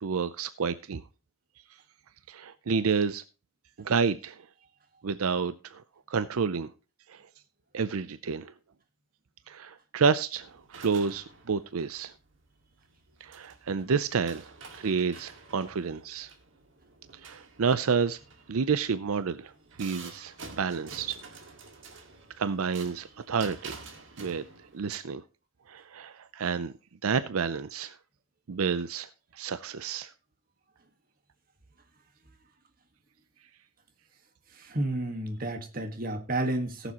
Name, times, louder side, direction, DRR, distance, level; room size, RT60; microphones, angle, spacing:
voice 1, 0.0-1.0 2.3-3.2 3.8-4.4 5.0-6.7 7.1-7.2 7.7-8.5 9.5-12.1 13.2-14.5 14.8-16.3 17.2-18.2 18.5-19.5 19.8-21.2 22.4-23.8 24.2-24.4 24.7-25.2 25.7-26.7 27.0-28.0 28.5-30.1, right 5 dB, 80° right, 14 dB, 0.5 m, -29 dB
sound 1, 10.3-25.0, right 4 dB, 60° right, 1.9 m, -49 dB
voice 2, 34.5-36.9, right 1 dB, 40° right, 6 dB, 1.5 m, -31 dB
18.5 x 7.1 x 2.9 m, 0.32 s
head